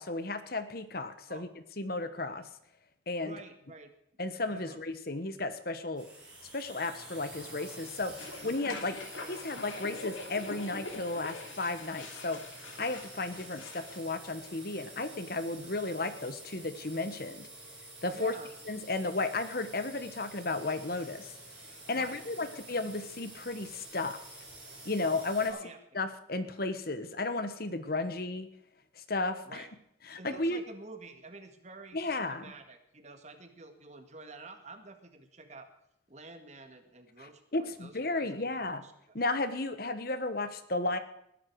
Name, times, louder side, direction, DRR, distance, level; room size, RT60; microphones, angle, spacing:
voice 1, 0.0-1.5 1.8-2.4 3.1-3.4 4.2-6.0 6.5-9.0 9.2-12.4 12.8-17.5 18.0-18.3 18.6-21.3 21.9-24.2 24.8-25.5 25.9-28.5 29.0-29.7 30.1-30.6 31.9-32.5 37.5-38.8 39.1-41.0, left 2 dB, 50° left, 11 dB, 1.3 m, -34 dB
voice 2, 3.2-3.9 4.4-4.8 18.1-18.5 21.9-22.5 25.5-25.8 29.4-29.7 30.2-35.7 36.1-38.6 38.8-39.2, right 3 dB, 35° right, 7 dB, 1.9 m, -49 dB
sound 1, 5.9-25.5, right 2 dB, 5° right, 6.9 m, -49 dB
sound 2, 8.1-14.0, left 3 dB, 85° left, 2.7 m, -44 dB
20.5 x 11.5 x 4.8 m, 0.75 s
head